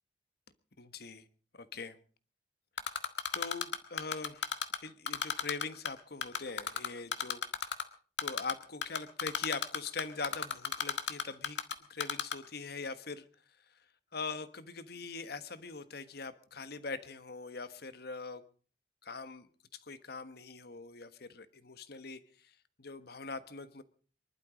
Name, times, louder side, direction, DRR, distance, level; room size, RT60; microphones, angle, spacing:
voice 1, 0.8-1.2 1.5-2.0 3.3-4.5 4.8-7.4 8.2-11.6 11.9-13.3 14.1-18.4 19.0-23.8, left 4 dB, 60° left, 12 dB, 1.4 m, -42 dB
Typing, 2.8-4.8 5.1-5.9 6.2-7.8 8.2-8.5 8.8-11.7 12.0-12.3, left 7 dB, 80° left, 1.7 m, -32 dB
24.0 x 12.0 x 5.1 m, 0.41 s
head